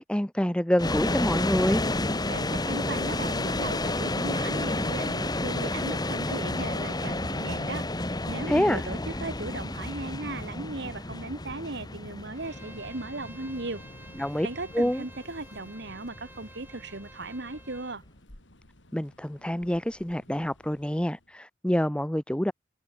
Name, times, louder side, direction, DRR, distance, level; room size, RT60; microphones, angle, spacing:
voice 1, 0.0-1.8 8.4-8.8 14.2-14.5 14.7-15.0 18.9-22.5, equal, 5° left, 0.8 m, -27 dB
sound 1, 0.8-17.8, left 2 dB, 20° left, 2.0 m, -31 dB
voice 2, 2.3-7.9 8.3-13.8 14.4-18.0, right 2 dB, 65° right, 2.0 m, -37 dB
Thunder, 7.7-21.3, left 1 dB, 80° left, 3.8 m, -53 dB
Bowed string instrument, 12.3-18.0, right 2 dB, 10° right, 5.0 m, -51 dB
head